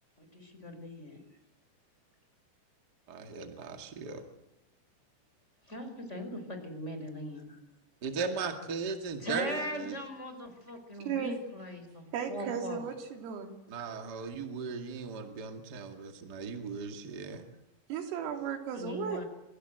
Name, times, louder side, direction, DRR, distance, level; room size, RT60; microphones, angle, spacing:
voice 1, 0.2-1.2 5.7-7.6 9.2-12.8 18.7-19.2, equal, 15° left, 6 dB, 4.5 m, -40 dB
voice 2, 3.1-4.2 8.0-10.0 13.7-17.4, right 4 dB, 55° right, 4 dB, 1.1 m, -37 dB
voice 3, 11.1-11.4 12.1-13.5 17.9-19.2, right 7 dB, 90° right, 4 dB, 5.5 m, -35 dB
27.0 x 25.5 x 8.0 m, 0.90 s
omnidirectional pair, 5.7 m